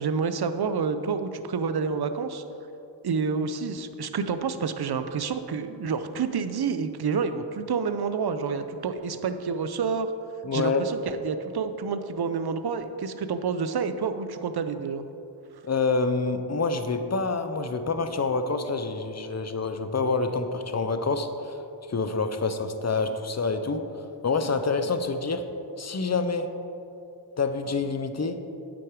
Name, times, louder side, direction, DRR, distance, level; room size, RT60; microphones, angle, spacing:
voice 1, 0.0-2.4 3.0-10.1 10.5-15.0, right 5 dB, 55° right, 10 dB, 0.6 m, -28 dB
voice 2, 10.4-10.8 15.6-21.6 21.9-23.8 24.2-25.4 25.8-26.5 27.4-28.4, left 4 dB, 35° left, 8 dB, 0.6 m, -27 dB
8.5 x 6.1 x 4.8 m, 2.8 s
wide cardioid pair, 60°, 45 cm